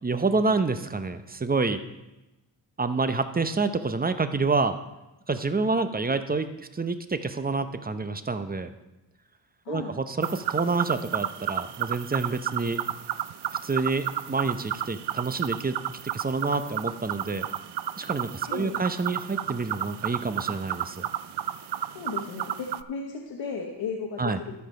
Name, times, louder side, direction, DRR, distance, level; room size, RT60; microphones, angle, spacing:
voice 1, 0.0-1.8 2.8-4.8 5.3-8.7 9.7-12.8 13.6-15.8 16.0-17.5 18.0-21.0 24.2-24.4, right 3 dB, 20° right, 10 dB, 0.7 m, -28 dB
sound 1, 10.2-22.8, right 11 dB, 60° right, 0.5 m, -32 dB
voice 2, 18.4-18.9 21.9-24.5, left 5 dB, 85° left, 0 dB, 1.2 m, -35 dB
13.0 x 5.0 x 5.6 m, 1.0 s
cardioid pair, 70°, 45 cm